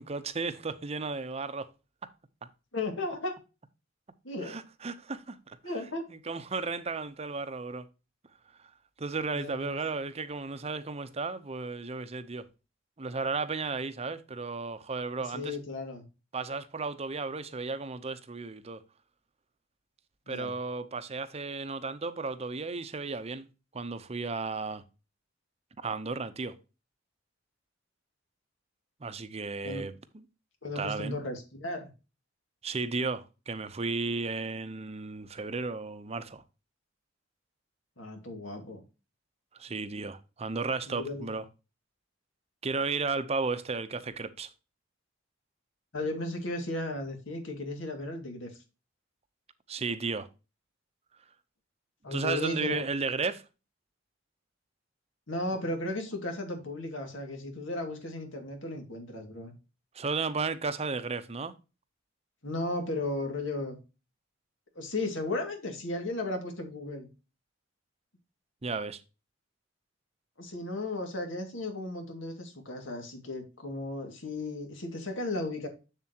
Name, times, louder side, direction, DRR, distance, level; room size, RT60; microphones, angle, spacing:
voice 1, 0.0-1.7 4.4-5.6 6.1-7.9 9.0-12.4 13.0-15.6 16.3-18.8 20.3-23.5 23.7-24.8 25.8-26.6 29.0-30.2 30.8-31.2 32.6-36.4 39.6-41.4 42.6-44.5 49.7-50.3 52.1-53.4 59.9-61.5 68.6-69.0, right 4 dB, 35° right, 0.7 m, -34 dB
voice 2, 2.7-3.4 4.2-4.6 5.6-6.0 9.3-9.8 15.3-16.0 20.3-20.5 29.6-29.9 30.6-31.9 38.0-38.8 40.9-41.3 45.9-48.5 52.0-52.8 55.3-59.5 62.4-63.8 64.8-67.1 70.4-75.7, left 2 dB, 80° left, 2.2 m, -35 dB
7.3 x 7.3 x 2.9 m
head